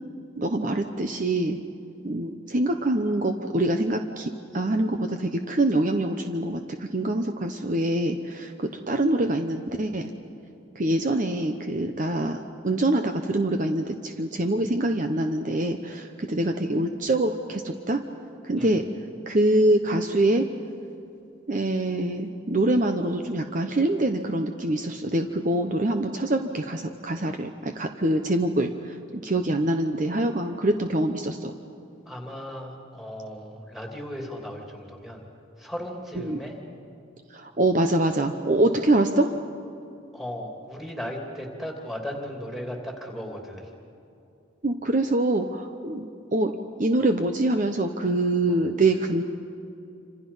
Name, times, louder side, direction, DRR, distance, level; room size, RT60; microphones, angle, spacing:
voice 1, 0.4-1.6 2.0-10.1 10.7-18.0 18.4-18.9 19.3-20.5 21.5-31.5 36.2-36.4 37.3-39.4 44.6-49.2, right 1 dB, 40° right, 6 dB, 0.9 m, -25 dB
voice 2, 32.0-35.2 35.6-36.6 40.1-43.7 48.5-48.6, equal, ahead, 1 dB, 3.0 m, -36 dB
28.0 x 26.5 x 5.6 m, 2.6 s
head